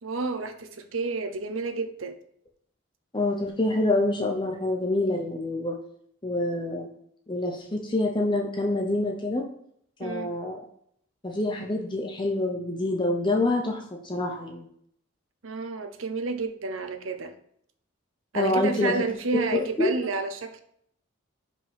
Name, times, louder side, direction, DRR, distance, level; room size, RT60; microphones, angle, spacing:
voice 1, 0.0-2.2 10.0-10.3 15.4-17.3 18.3-20.6, right 3 dB, 85° right, 8 dB, 0.8 m, -30 dB
voice 2, 3.1-5.8 6.2-6.9 7.3-9.5 10.0-10.6 11.2-14.7 18.3-18.9 19.8-19.9, left 2 dB, 25° left, 2 dB, 0.7 m, -26 dB
5.3 x 5.1 x 5.3 m, 0.68 s
head